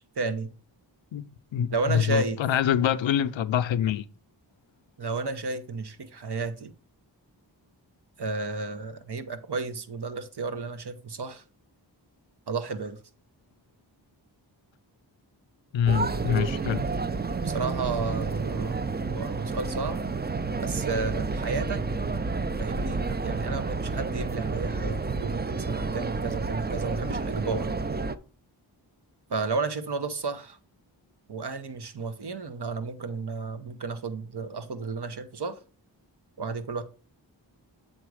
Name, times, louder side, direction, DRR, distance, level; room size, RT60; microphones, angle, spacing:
voice 1, 0.1-0.5 1.7-2.4 5.0-6.7 8.2-11.4 12.5-13.0 17.4-18.8 19.1-20.0 20.6-21.8 22.6-27.7 29.3-30.6 31.3-35.6 36.4-36.8, right 4 dB, 60° right, 1.0 m, -32 dB
voice 2, 1.1-4.1 15.7-16.8, left 9 dB, 85° left, 0.5 m, -25 dB
sound 1, 15.9-28.2, right 4 dB, 25° right, 0.5 m, -30 dB
7.7 x 4.0 x 4.8 m
cardioid pair, 45°, 45 cm